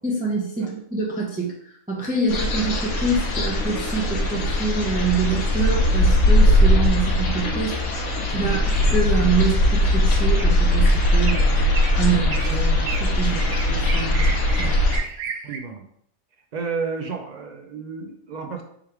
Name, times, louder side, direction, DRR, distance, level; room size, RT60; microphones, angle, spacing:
voice 1, 0.0-7.8 8.3-14.8, right 4 dB, 10° right, -4 dB, 0.7 m, -26 dB
sound 1, 2.3-15.0, left 1 dB, 65° left, 1.1 m, -20 dB
sound 2, 10.4-10.7 11.3-11.5 11.7-12.0 12.3-12.5 12.9-13.1 13.4-15.6, right 5 dB, 75° right, 1.0 m, -32 dB
voice 2, 15.4-15.8 16.5-18.6, right 5 dB, 60° right, 4 dB, 0.4 m, -31 dB
3.6 x 3.2 x 4.6 m, 0.68 s
omnidirectional pair, 1.5 m